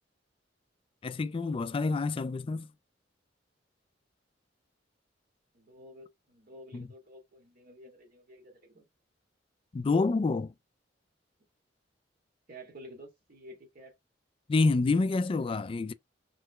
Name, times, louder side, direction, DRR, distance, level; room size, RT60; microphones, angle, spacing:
voice 1, 1.0-2.7 6.7-6.9 9.7-10.5 14.5-15.9, left 3 dB, 30° left, 0.3 m, -28 dB
voice 2, 5.5-8.8 12.5-13.9, equal, 55° right, 1.6 m, -51 dB
3.6 x 3.3 x 3.2 m
head